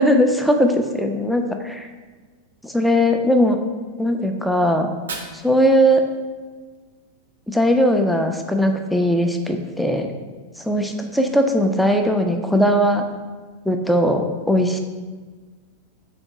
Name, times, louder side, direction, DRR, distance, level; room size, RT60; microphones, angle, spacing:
voice 1, 0.0-1.8 2.6-3.6 4.0-4.9 5.3-6.0 7.5-10.1 10.6-13.0 13.7-14.8, equal, ahead, 4 dB, 0.4 m, -19 dB
Fire, 4.8-6.8, right 4 dB, 70° right, 0.6 m, -39 dB
3.6 x 3.4 x 4.0 m, 1.4 s
figure-of-eight pair, 90°, 0 cm